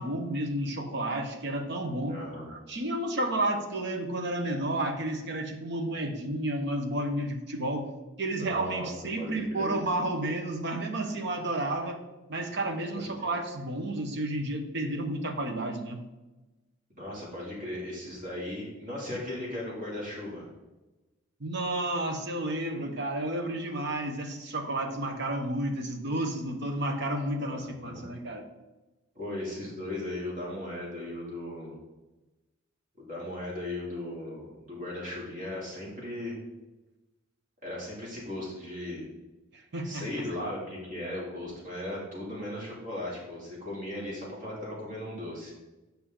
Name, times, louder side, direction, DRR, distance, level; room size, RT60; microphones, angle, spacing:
voice 1, 0.0-2.2 2.5-7.9 8.2-12.0 12.3-16.0 21.4-28.5 39.5-40.0, right 1 dB, 55° right, 5 dB, 1.0 m, -31 dB
voice 2, 2.1-2.5 8.2-8.9 9.2-9.8 12.9-13.0 17.0-20.5 27.4-28.0 29.1-31.8 33.0-36.4 37.6-39.1 39.8-45.5, left 1 dB, 40° right, -5 dB, 2.7 m, -37 dB
8.4 x 5.8 x 3.8 m, 1.1 s
head